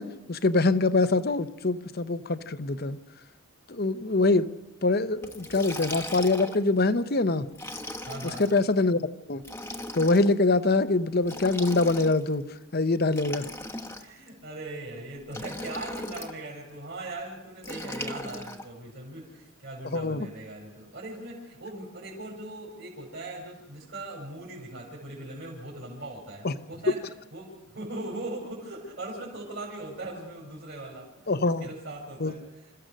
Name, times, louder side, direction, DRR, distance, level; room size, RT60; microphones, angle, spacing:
voice 1, 0.0-3.0 3.7-4.5 4.8-7.5 8.2-9.4 9.9-12.4 12.7-13.4 19.9-20.3 26.4-26.5 31.3-31.7 32.2-32.3, left 3 dB, 45° left, 12 dB, 0.8 m, -24 dB
Liquid, 5.2-6.7 7.5-8.6 9.4-10.3 11.2-12.3 13.1-14.3 15.3-16.4 17.6-18.6, left 1 dB, 10° left, 1.1 m, -38 dB
voice 2, 8.0-8.4 14.0-27.0 27.3-32.7, right 2 dB, 55° right, -6 dB, 5.2 m, -40 dB
27.5 x 15.0 x 6.4 m, 1.0 s
head